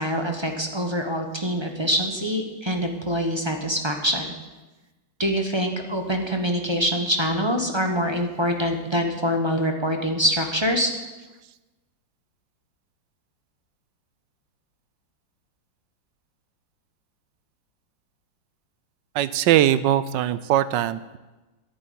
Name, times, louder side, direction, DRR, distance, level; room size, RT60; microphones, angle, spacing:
voice 1, 0.0-4.3 5.2-10.9, equal, 20° right, 4 dB, 1.0 m, -25 dB
voice 2, 19.1-21.2, right 12 dB, 75° right, 15 dB, 1.2 m, -21 dB
11.0 x 9.0 x 9.3 m, 1.1 s
omnidirectional pair, 2.1 m